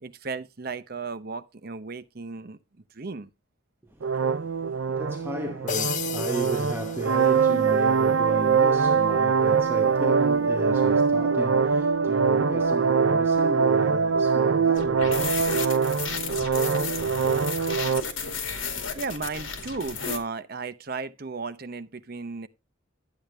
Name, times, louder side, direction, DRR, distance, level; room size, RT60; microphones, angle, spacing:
voice 1, 0.0-2.6 2.9-3.3 13.1-13.4 16.4-16.8 18.9-22.5, right 4 dB, 50° right, 0.8 m, -35 dB
voice 2, 4.0-15.4, equal, 10° right, 0.9 m, -35 dB
sound 1, 4.0-18.0, right 5 dB, 80° right, 0.6 m, -23 dB
sound 2, 5.7-7.7, left 9 dB, 35° left, 0.5 m, -34 dB
sound 3, 14.8-20.2, left 5 dB, 80° left, 2.4 m, -33 dB
11.5 x 8.5 x 3.4 m
head